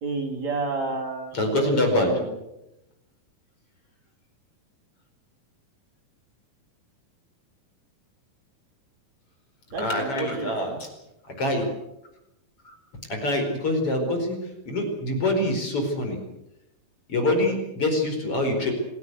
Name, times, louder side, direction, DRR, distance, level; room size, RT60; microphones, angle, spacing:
voice 1, 0.0-1.4 1.6-2.4 9.7-10.8, right 3 dB, 50° right, 3 dB, 4.6 m, -30 dB
voice 2, 1.3-2.1 9.8-10.9 11.4-11.7 13.1-14.4 14.7-16.2 17.1-18.7, left 1 dB, 40° left, 3 dB, 5.6 m, -25 dB
28.0 x 17.0 x 8.2 m, 0.90 s
omnidirectional pair, 4.2 m